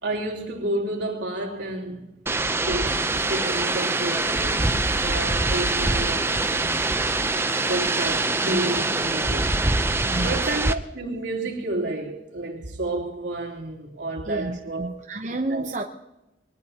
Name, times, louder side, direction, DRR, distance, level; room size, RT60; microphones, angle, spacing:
voice 1, 0.0-2.2 2.6-6.8 7.6-9.5 10.2-14.9 15.5-15.7, right 2 dB, 80° right, 3.3 m, -30 dB
sound 1, 2.3-10.7, right 2 dB, 15° right, 0.5 m, -24 dB
voice 2, 10.0-10.4 14.3-15.8, right 2 dB, 40° right, 0.8 m, -30 dB
23.0 x 19.5 x 2.9 m
head